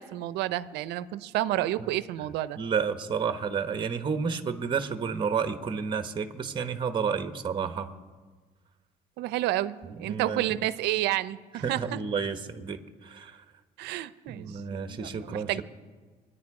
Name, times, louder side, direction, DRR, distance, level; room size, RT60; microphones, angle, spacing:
voice 1, 0.0-2.6 9.2-12.0 13.8-15.6, right 14 dB, 90° right, 16 dB, 0.6 m, -30 dB
voice 2, 2.6-7.9 10.0-10.5 11.6-13.4 14.3-15.6, right 6 dB, 30° right, 8 dB, 1.1 m, -31 dB
26.0 x 10.0 x 4.9 m, 1.4 s
cardioid pair, 110°, 17 cm